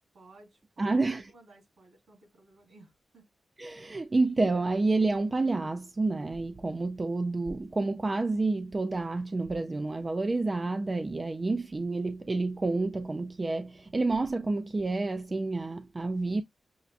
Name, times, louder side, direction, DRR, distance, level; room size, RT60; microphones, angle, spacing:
voice 1, 0.1-3.3, right 2 dB, 65° right, 2.9 m, -57 dB
voice 2, 0.8-1.3 3.6-16.4, right 3 dB, 30° right, 0.4 m, -29 dB
6.9 x 2.5 x 2.2 m
wide cardioid pair, 120°, 0 cm